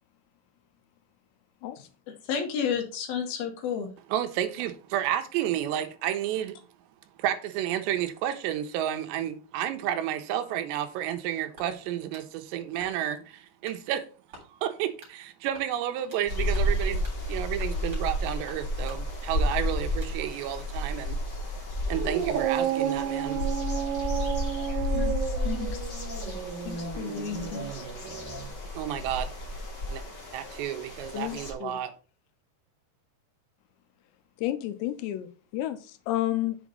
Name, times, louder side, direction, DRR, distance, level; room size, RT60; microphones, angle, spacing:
voice 1, 2.3-3.9 24.9-25.1 25.4-25.7 26.6-27.8, left 7 dB, 70° left, 2.9 m, -32 dB
voice 2, 4.1-6.6 7.2-14.0 14.5-21.2 21.9-23.5 28.7-29.3 29.9-30.0 30.3-31.9, right 11 dB, 85° right, 3.0 m, -31 dB
sound 1, 11.6-12.3 12.8-13.2 13.6-13.8 14.3-14.5 15.0-15.2 15.5-16.3 16.5-16.8 17.0-17.2 17.6-18.1 18.5-19.0 19.5-20.2, right 2 dB, 30° right, 3.7 m, -50 dB
sound 2, 16.3-31.5, left 1 dB, 40° left, 1.5 m, -32 dB
Dog, 21.9-28.5, right 9 dB, 65° right, 2.5 m, -32 dB
voice 3, 31.1-31.8 34.4-36.6, left 14 dB, 90° left, 2.9 m, -31 dB
6.9 x 4.9 x 5.3 m
omnidirectional pair, 5.0 m